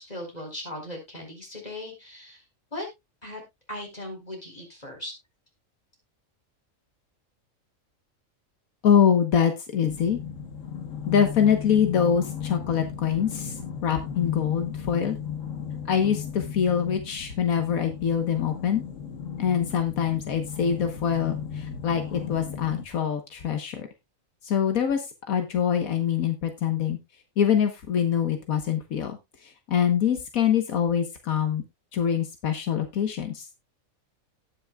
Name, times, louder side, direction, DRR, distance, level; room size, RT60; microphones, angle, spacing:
voice 1, 0.0-2.4 2.7-2.9 3.2-3.4 3.7-5.1, left 1 dB, 30° left, 3 dB, 4.3 m, -38 dB
voice 2, 8.8-10.2 11.1-13.5 13.8-15.2 15.9-18.8 19.4-23.9 24.4-27.0 27.4-31.6 31.9-33.5, left 8 dB, 85° left, 6 dB, 1.6 m, -24 dB
sound 1, 9.8-22.9, left 7 dB, 65° left, 1.5 m, -36 dB
18.0 x 6.3 x 2.3 m, 0.21 s
omnidirectional pair, 1.4 m